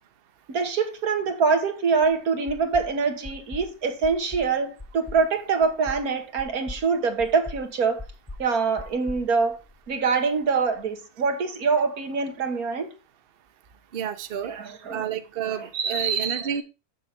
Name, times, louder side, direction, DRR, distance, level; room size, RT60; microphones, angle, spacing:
voice 1, 0.5-8.0 8.4-9.6 9.9-12.9 14.4-15.0 15.5-16.6, right 5 dB, 85° right, 1.9 m, -25 dB
sound 1, 2.0-2.1 2.5-2.9 3.2-3.7 4.0-4.5 4.8-5.2 5.6-6.0 6.4-6.8 7.2-7.6 8.0-8.5 8.8-10.0, left 2 dB, 10° left, 1.0 m, -39 dB
voice 2, 13.9-14.5 14.9-16.6, right 9 dB, 45° right, 0.9 m, -30 dB
7.4 x 6.7 x 4.3 m
omnidirectional pair, 1.5 m